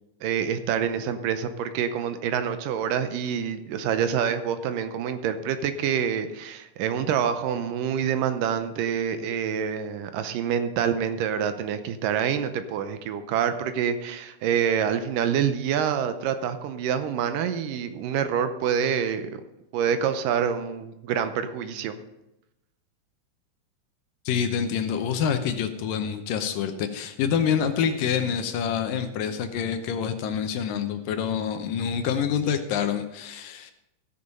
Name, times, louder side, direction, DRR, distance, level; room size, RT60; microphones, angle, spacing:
voice 1, 0.2-19.3 19.7-22.0, right 8 dB, 75° right, 10 dB, 2.2 m, -26 dB
voice 2, 24.3-33.7, left 7 dB, 75° left, 8 dB, 2.5 m, -27 dB
15.5 x 6.7 x 5.3 m, 0.91 s
omnidirectional pair, 4.1 m